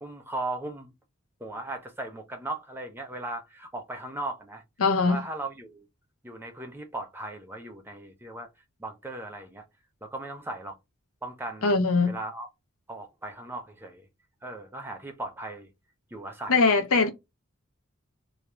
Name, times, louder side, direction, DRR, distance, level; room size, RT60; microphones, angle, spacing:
voice 1, 0.0-0.9 1.4-4.6 5.0-5.8 6.2-8.5 8.8-9.6 10.0-10.8 11.2-11.7 12.1-12.5 12.9-14.1 14.4-15.7 16.1-16.6, right 2 dB, 10° right, 0.5 m, -37 dB
voice 2, 4.8-5.2 11.6-12.2 16.5-17.1, left 4 dB, 80° left, 0.6 m, -21 dB
2.4 x 2.1 x 2.9 m
head